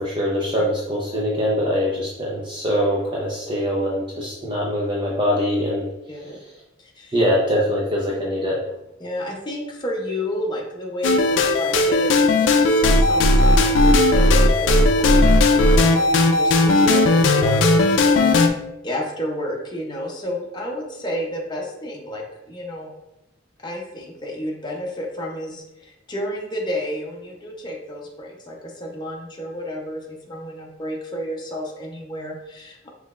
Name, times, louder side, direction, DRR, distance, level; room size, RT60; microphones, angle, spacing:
voice 1, 0.0-5.9 7.1-8.6, equal, 25° right, -4 dB, 0.6 m, -23 dB
voice 2, 6.1-6.4 6.8-7.2 9.0-22.9 23.6-32.9, equal, 25° left, -1 dB, 0.7 m, -31 dB
sound 1, 11.0-18.5, left 2 dB, 75° left, 0.4 m, -16 dB
5.5 x 3.1 x 2.4 m, 0.90 s
head